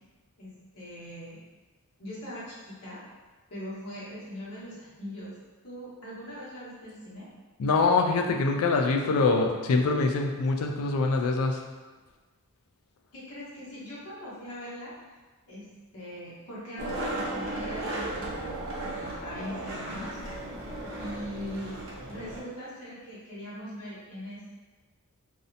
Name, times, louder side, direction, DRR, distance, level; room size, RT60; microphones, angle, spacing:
voice 1, 0.4-1.4 2.0-3.0 3.5-5.3 5.6-7.3 13.1-14.9 15.5-15.7 15.9-18.6 18.8-20.2 21.0-21.7 22.1-24.5, equal, 90° left, -9 dB, 0.9 m, -41 dB
voice 2, 7.6-11.6, left 3 dB, 70° left, 3 dB, 0.3 m, -24 dB
Skateboard, 16.8-22.4, right 1 dB, 60° right, 0.5 m, -35 dB
2.6 x 2.1 x 2.5 m, 1.3 s
head